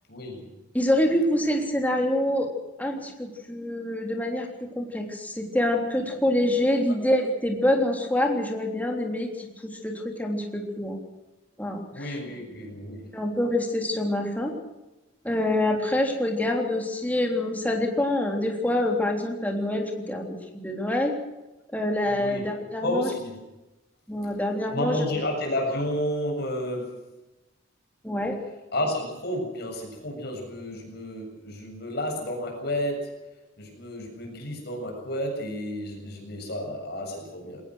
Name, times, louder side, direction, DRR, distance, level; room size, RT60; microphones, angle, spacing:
voice 1, 0.1-0.5 11.9-13.2 22.1-22.5 22.8-23.4 24.7-27.0 28.7-33.1 33.6-37.6, left 1 dB, 50° left, 1 dB, 7.4 m, -31 dB
voice 2, 0.7-2.5 2.8-9.5 9.8-11.0 11.6-12.1 13.1-14.5 15.2-20.2 20.6-21.1 21.7-23.1 24.1-25.0 28.0-28.4, left 1 dB, 10° left, 1 dB, 3.4 m, -26 dB
22.0 x 19.0 x 6.4 m, 1.0 s
head